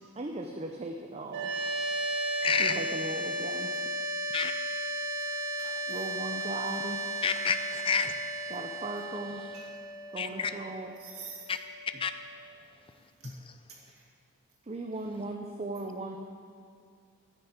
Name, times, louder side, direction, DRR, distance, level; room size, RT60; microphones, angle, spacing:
voice 1, 0.2-1.5 2.5-3.7 5.9-7.2 8.5-9.4 10.1-10.9 14.7-16.2, right 2 dB, 30° right, 3 dB, 0.5 m, -38 dB
sound 1, 1.3-12.4, right 1 dB, 50° right, 1.3 m, -35 dB
voice 2, 2.4-2.8 4.3-4.5 7.2-8.1 10.2-10.5 11.5-11.6 12.0-12.1, left 6 dB, 25° left, 10 dB, 0.4 m, -28 dB
voice 3, 5.2-6.0 6.4-6.8 9.5-9.7 11.0-11.5 13.2-13.3 13.7-14.0, right 5 dB, 70° right, -3 dB, 2.3 m, -49 dB
9.9 x 6.7 x 8.4 m, 2.2 s
head